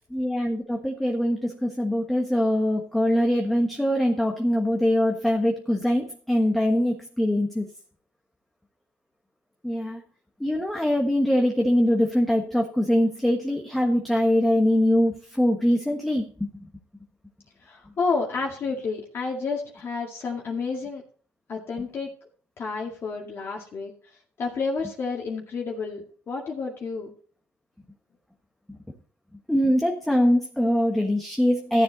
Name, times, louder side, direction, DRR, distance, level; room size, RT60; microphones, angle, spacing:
voice 1, 0.1-7.7 9.6-10.0 10.4-16.5 29.5-31.8, equal, 5° left, 2 dB, 1.3 m, -23 dB
voice 2, 17.6-21.0 21.5-22.1 22.6-23.9 24.4-27.1, left 4 dB, 45° left, -2 dB, 2.1 m, -30 dB
13.5 x 7.3 x 4.0 m, 0.43 s
cardioid pair, 100°, 6 cm